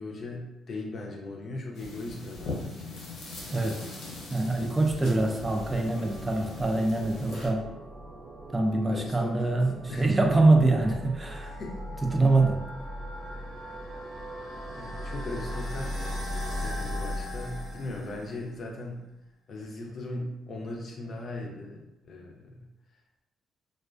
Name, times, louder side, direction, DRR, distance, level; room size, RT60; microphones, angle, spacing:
voice 1, 0.0-2.9 8.9-9.6 9.9-10.1 11.4-12.0 14.7-16.2 16.6-19.0 19.5-22.7, left 2 dB, 50° left, 0 dB, 0.5 m, -38 dB
sound 1, 1.7-7.5, left 2 dB, 85° left, 0.7 m, -40 dB
voice 2, 3.5-3.9 4.3-7.7 8.5-11.6 12.0-12.6, right 2 dB, 20° right, 2 dB, 0.3 m, -24 dB
sound 2, 4.4-18.6, equal, 60° right, 0.7 m, -38 dB
2.3 x 2.2 x 2.4 m, 0.93 s
cardioid pair, 90°, 0 cm